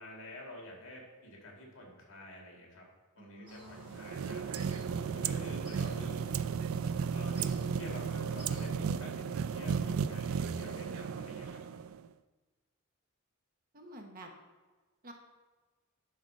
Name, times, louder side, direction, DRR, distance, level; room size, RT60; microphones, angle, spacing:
voice 1, 0.0-2.9 3.1-4.8 5.1-6.4 7.1-11.6, left 1 dB, 65° left, -1 dB, 2.4 m, -49 dB
voice 2, 3.2-4.0 13.7-14.3 15.0-15.1, right 1 dB, 40° right, 3 dB, 1.2 m, -50 dB
sound 1, 3.5-8.6, equal, 5° right, 2.9 m, -55 dB
sound 2, 3.8-12.1, right 6 dB, 70° right, 0.4 m, -34 dB
10.5 x 4.2 x 6.2 m, 1.3 s
head